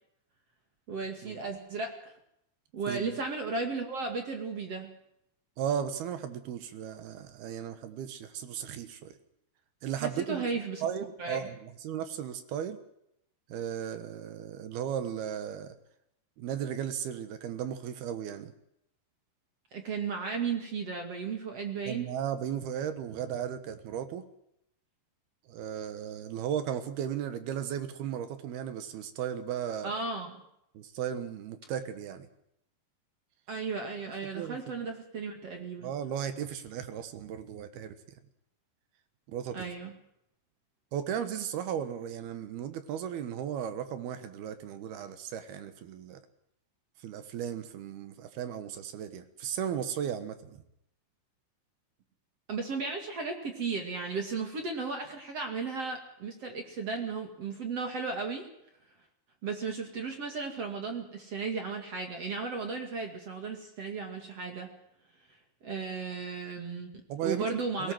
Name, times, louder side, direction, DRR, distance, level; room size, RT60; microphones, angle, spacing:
voice 1, 0.9-2.1 2.7-4.9 10.0-10.8 11.2-11.4 19.7-22.1 29.8-30.4 33.5-35.9 39.5-39.9 52.5-58.5 59.4-64.7 65.3-65.4 65.6-66.9 67.2-67.9, right 4 dB, 45° right, 4 dB, 2.4 m, -35 dB
voice 2, 5.6-9.2 9.8-10.4 10.8-12.8 13.5-15.7 16.4-18.5 21.9-24.2 25.5-29.9 30.7-32.3 34.3-34.6 35.8-38.0 39.3-39.7 40.9-46.2 47.0-50.6 67.1-67.9, right 9 dB, 65° right, 10 dB, 2.9 m, -35 dB
21.5 x 18.0 x 7.7 m, 0.76 s
omnidirectional pair, 5.4 m